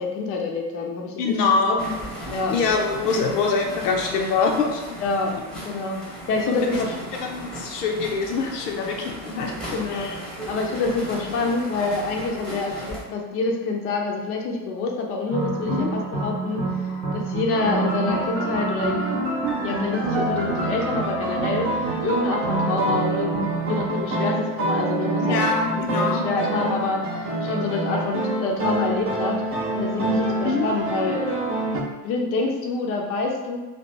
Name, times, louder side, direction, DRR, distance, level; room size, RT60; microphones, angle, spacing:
voice 1, 0.0-1.4 1.6-1.7 2.3-2.6 5.0-5.3 5.6-6.9 9.7-10.1 10.5-19.0 19.6-29.4 29.7-31.3 32.0-33.6, left 3 dB, 30° left, 0 dB, 0.5 m, -27 dB
voice 2, 1.2-2.0 2.5-5.0 5.3-5.4 6.5-6.8 7.2-9.6 9.9-10.2 15.7-15.9 25.2-26.3 30.4-30.7, left 4 dB, 70° left, 1 dB, 0.6 m, -24 dB
sound 1, 1.8-13.0, equal, ahead, 0.8 m, -36 dB
sound 2, 15.3-23.8, right 3 dB, 85° right, 0.7 m, -28 dB
sound 3, 17.5-31.8, right 2 dB, 30° right, 0.7 m, -27 dB
2.7 x 2.5 x 3.3 m, 1.2 s
figure-of-eight pair, 65°, 50 cm